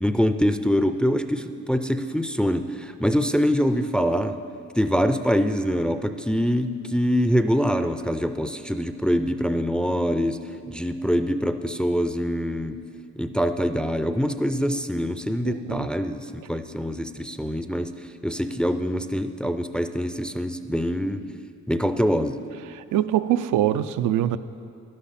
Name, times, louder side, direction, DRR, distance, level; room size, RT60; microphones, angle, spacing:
voice 1, 0.0-4.3 4.8-10.4 10.7-12.8 13.2-17.9 18.2-21.2 21.7-22.4, equal, 5° left, 9 dB, 0.4 m, -24 dB
voice 2, 15.4-15.9 22.7-24.4, right 12 dB, 80° right, 11 dB, 0.5 m, -24 dB
11.5 x 11.5 x 4.2 m, 2.5 s
cardioid pair, 90°, 30 cm